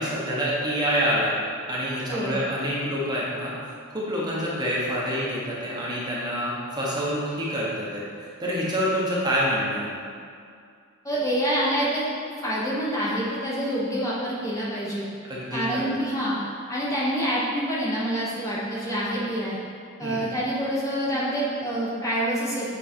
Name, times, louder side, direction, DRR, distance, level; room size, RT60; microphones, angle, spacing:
voice 1, 0.0-1.4 1.7-3.5 3.9-9.9 15.2-15.9 20.0-20.2, equal, 20° right, -6 dB, 1.1 m, -27 dB
voice 2, 2.1-2.4 11.0-12.0 12.4-15.1 15.5-16.4 16.7-19.6 20.0-22.8, equal, 15° left, -7 dB, 1.1 m, -27 dB
7.1 x 4.0 x 4.5 m, 2.3 s
head